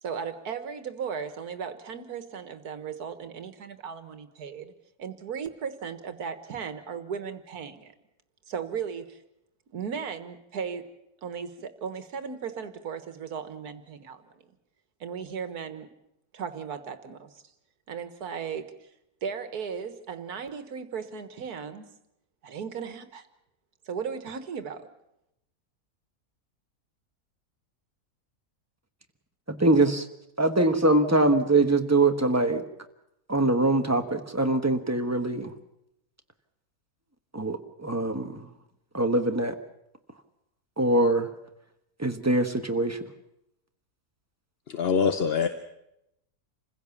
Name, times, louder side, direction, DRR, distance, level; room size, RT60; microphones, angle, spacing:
voice 1, 0.0-4.7 5.0-7.9 8.5-9.2 9.7-10.9 11.2-14.5 15.0-15.9 16.3-17.4 17.9-18.9 19.2-21.8 22.4-23.3 23.9-24.9, right 6 dB, 85° right, 10 dB, 1.9 m, -36 dB
voice 2, 29.5-30.1 30.4-32.6 33.3-35.5 37.3-38.5 38.9-39.5 40.8-41.3 42.0-43.0, right 2 dB, 10° right, 6 dB, 1.1 m, -23 dB
voice 3, 44.7-45.5, left 6 dB, 45° left, 9 dB, 1.0 m, -24 dB
27.5 x 16.0 x 7.1 m, 0.84 s
omnidirectional pair, 1.6 m